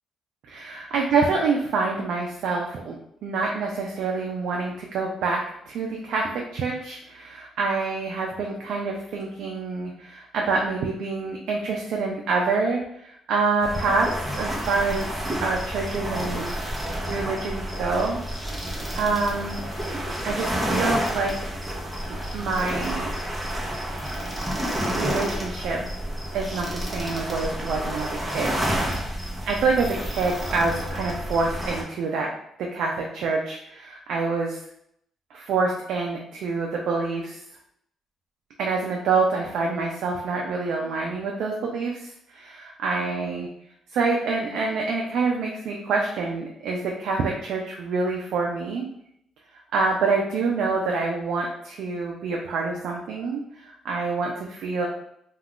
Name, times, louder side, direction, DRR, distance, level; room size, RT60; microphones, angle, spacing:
voice 1, 0.5-3.0 3.2-14.1 14.3-16.6 17.1-18.2 19.0-19.6 20.2-21.3 22.3-23.2 24.9-25.8 26.3-29.0 29.5-32.3 32.7-34.6 35.3-37.4 38.6-43.5 43.9-48.9 49.7-54.9, right 4 dB, 75° right, -1 dB, 0.4 m, -26 dB
sound 1, 13.6-31.8, equal, 10° right, 0.7 m, -30 dB
2.3 x 2.3 x 3.5 m, 0.75 s
cardioid pair, 90°, 0 cm